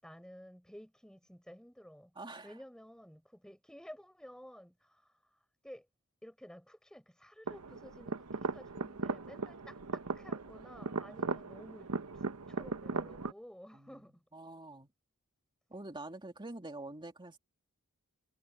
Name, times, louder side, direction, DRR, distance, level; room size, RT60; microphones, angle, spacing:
voice 1, 0.0-2.1 2.4-5.0 5.6-5.9 6.2-14.2, equal, 5° left, 6.9 m, -53 dB
voice 2, 2.2-2.6 13.7-14.0 14.3-14.9 15.7-17.4, right 2 dB, 20° right, 2.4 m, -46 dB
sound 1, 7.5-13.3, right 4 dB, 90° right, 1.1 m, -38 dB
head